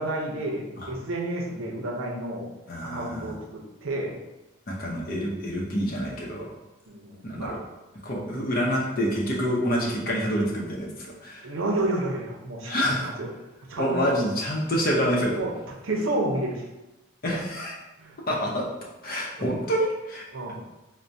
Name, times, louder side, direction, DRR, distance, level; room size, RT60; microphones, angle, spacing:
voice 1, 0.0-2.5 2.8-4.2 6.9-7.6 11.4-13.3 13.7-14.1 15.4-15.5 15.8-16.7 18.0-18.2 20.3-20.6, right 1 dB, 85° right, 0 dB, 0.6 m, -30 dB
voice 2, 2.7-3.3 4.7-6.5 7.2-7.6 8.0-11.6 12.6-13.1 13.8-15.3 17.2-17.7 18.3-18.7 19.0-20.2, equal, 45° left, -2 dB, 0.6 m, -27 dB
4.4 x 2.1 x 2.6 m, 1.0 s
head